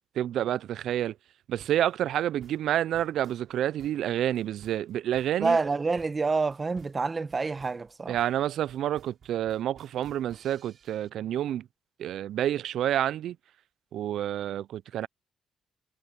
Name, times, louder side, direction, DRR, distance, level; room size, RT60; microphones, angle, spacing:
voice 1, 0.2-1.1 1.5-5.6 8.1-11.6 12.0-13.4 13.9-15.1, right 11 dB, 75° right, 0.3 m, -29 dB
sound 1, 1.6-11.1, right 7 dB, 55° right, 3.5 m, -56 dB
voice 2, 5.4-8.2, right 4 dB, 30° right, 1.3 m, -27 dB
cardioid pair, 90°, 0 cm